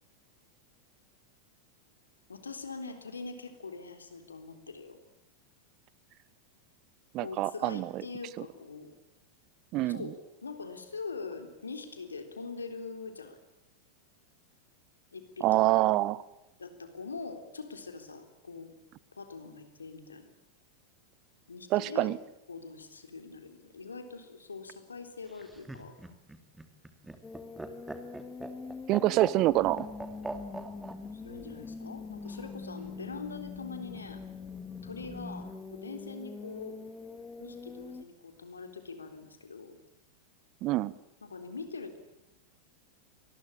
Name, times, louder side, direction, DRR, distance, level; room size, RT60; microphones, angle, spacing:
voice 1, 2.3-5.0 7.2-8.9 9.9-13.4 15.1-15.9 16.6-18.7 19.1-20.3 21.5-22.1 22.5-25.9 31.1-34.2 34.8-36.8 37.4-39.8 41.2-42.0, left 4 dB, 75° left, 8 dB, 3.7 m, -43 dB
voice 2, 7.1-8.0 9.7-10.1 15.4-16.2 21.7-22.2 28.9-29.8 40.6-40.9, right 17 dB, 40° right, 21 dB, 1.0 m, -26 dB
Laughter, 25.3-31.0 32.2-32.9, right 2 dB, 5° right, 2.7 m, -41 dB
sound 1, 27.2-38.0, left 4 dB, 15° left, 2.3 m, -43 dB
26.5 x 21.0 x 8.9 m, 0.86 s
figure-of-eight pair, 90°, 0 cm